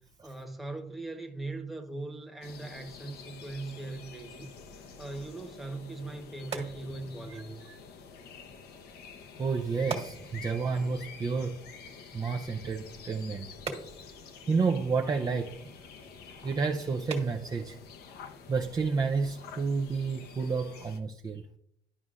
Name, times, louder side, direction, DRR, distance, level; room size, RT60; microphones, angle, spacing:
voice 1, 0.2-4.5 5.0-7.6, right 2 dB, ahead, 1.1 m, -40 dB
sound 1, 2.4-21.0, left 5 dB, 70° left, 0.9 m, -49 dB
sound 2, 5.9-19.4, right 4 dB, 40° right, 1.5 m, -46 dB
voice 2, 9.4-11.6 12.1-13.5 14.5-15.6 16.4-17.8 18.5-21.4, right 4 dB, 20° right, 0.5 m, -30 dB
11.0 x 5.3 x 2.5 m
cardioid pair, 110°, 17 cm